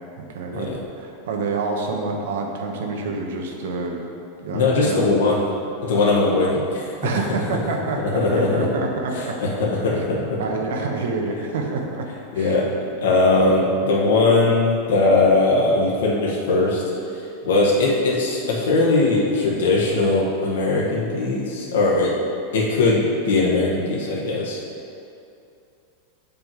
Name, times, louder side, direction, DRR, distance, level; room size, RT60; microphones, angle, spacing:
voice 1, 0.2-4.0 4.4-5.1 7.0-9.4 9.9-10.0 10.4-12.1 12.3-12.6, right 3 dB, 75° right, 2 dB, 1.1 m, -27 dB
voice 2, 4.5-5.4 5.8-7.2 8.0-8.7 9.1-10.4 12.3-12.7 13.0-22.1 22.5-24.6, left 3 dB, 90° left, -4 dB, 1.3 m, -20 dB
7.6 x 5.3 x 4.6 m, 2.6 s
supercardioid pair, 180°, 0 cm